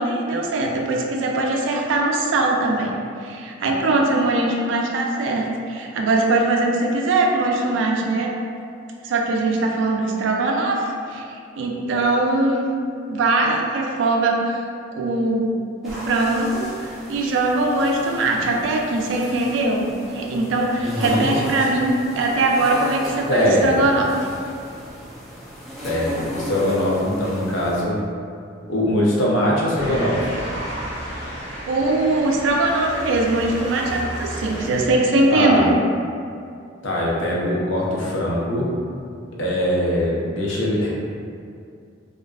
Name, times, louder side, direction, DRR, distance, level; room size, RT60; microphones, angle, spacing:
voice 1, 0.0-3.0 3.2-8.3 9.0-11.3 11.6-12.7 13.1-14.6 14.9-15.5 15.8-24.1 31.7-35.7, right 2 dB, 75° right, 0 dB, 0.3 m, -21 dB
sound 1, 15.8-27.8, equal, ahead, 0.4 m, -35 dB
voice 2, 20.8-21.3 21.6-21.7 23.3-23.8 25.8-28.0 28.7-30.2 35.3-35.6 36.8-38.7 39.4-40.9, left 1 dB, 85° left, -5 dB, 0.6 m, -21 dB
Motor vehicle (road) / Siren, 29.8-34.9, equal, 35° right, 0.8 m, -32 dB
2.4 x 2.3 x 2.2 m, 2.4 s
head